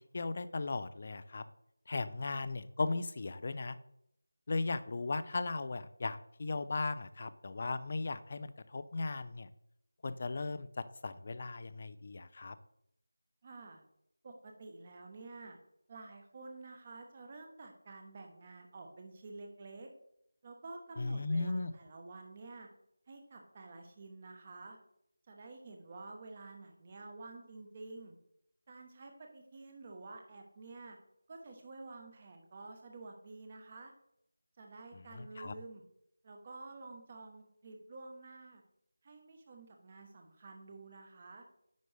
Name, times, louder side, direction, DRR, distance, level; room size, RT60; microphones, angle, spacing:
voice 1, 0.1-1.4 1.9-3.8 4.5-9.5 10.0-12.5 21.0-21.7 35.1-35.5, left 3 dB, 35° left, 14 dB, 0.4 m, -37 dB
voice 2, 13.4-13.8 14.2-15.6 15.9-19.9 20.4-22.7 23.1-24.8 25.3-28.1 28.7-31.0 31.3-33.9 34.6-35.8 36.2-38.6 39.0-41.4, right 3 dB, 25° right, 3 dB, 1.0 m, -50 dB
9.3 x 5.1 x 3.3 m, 0.77 s
figure-of-eight pair, 175°, 0 cm